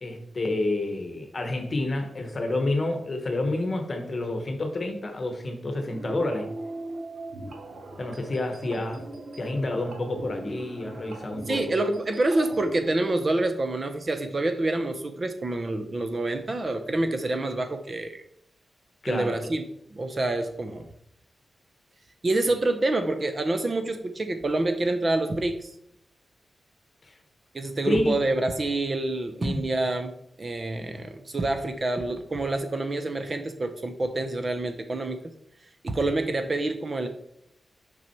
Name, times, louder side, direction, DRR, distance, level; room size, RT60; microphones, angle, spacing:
voice 1, 0.0-6.5 8.0-9.0 9.4-11.6 19.0-19.4 27.1-27.2 27.8-28.2 29.4-29.7, left 2 dB, 35° left, 5 dB, 1.1 m, -29 dB
sound 1, 5.9-12.9, right 2 dB, 85° right, 1.0 m, -40 dB
voice 2, 11.5-18.2 19.1-19.6 19.9-20.9 22.2-25.7 27.5-35.2 35.8-37.1, right 2 dB, 30° right, 7 dB, 0.6 m, -27 dB
5.8 x 5.4 x 4.5 m, 0.75 s
wide cardioid pair, 165°, 0 cm